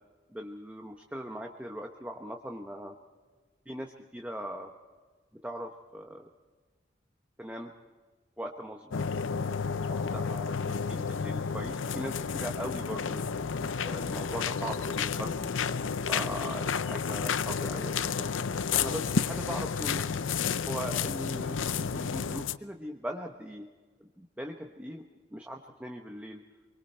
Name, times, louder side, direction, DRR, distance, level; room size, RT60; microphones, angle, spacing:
voice 1, 0.3-3.0 3.7-4.7 5.4-6.3 7.4-7.7 8.4-9.1 9.4-9.5 9.9-13.2 13.8-15.5 16.1-18.3 18.8-20.1 20.7-23.7 24.0-26.4, equal, 10° right, 2 dB, 1.0 m, -40 dB
sound 1, 8.9-22.6, left 6 dB, 90° left, 0.6 m, -31 dB
26.0 x 23.5 x 4.5 m, 1.4 s
head